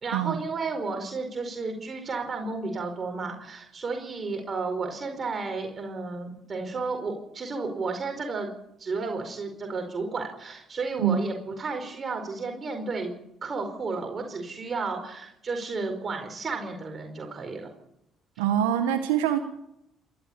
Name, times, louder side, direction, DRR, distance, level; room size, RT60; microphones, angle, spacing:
voice 1, 0.0-8.5 8.8-13.1 13.4-17.7, right 4 dB, 40° right, 4 dB, 4.7 m, -32 dB
voice 2, 18.4-19.4, right 10 dB, 85° right, 7 dB, 1.4 m, -24 dB
27.5 x 13.0 x 8.7 m, 0.81 s
hypercardioid pair, 55°, 0 cm